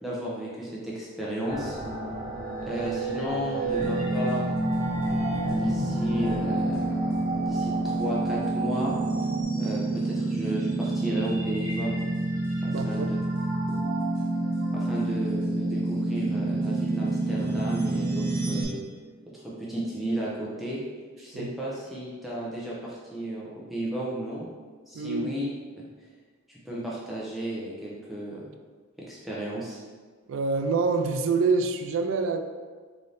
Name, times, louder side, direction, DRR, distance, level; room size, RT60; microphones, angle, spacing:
voice 1, 0.0-1.8 2.6-4.8 5.5-7.0 7.5-8.9 9.5-12.0 12.6-13.2 14.7-18.8 19.3-20.8 21.2-24.5 24.9-25.5 25.8-25.9 26.5-28.5 29.0-29.8, right 1 dB, ahead, -7 dB, 0.6 m, -34 dB
sound 1, 1.5-9.4, right 1 dB, 25° left, 1.1 m, -32 dB
sound 2, 3.8-18.6, right 2 dB, 40° right, 0.8 m, -28 dB
voice 2, 12.7-13.1 21.3-21.5 24.9-25.2 30.3-32.4, right 4 dB, 65° right, 7 dB, 0.3 m, -26 dB
3.9 x 2.7 x 3.3 m, 1.5 s
head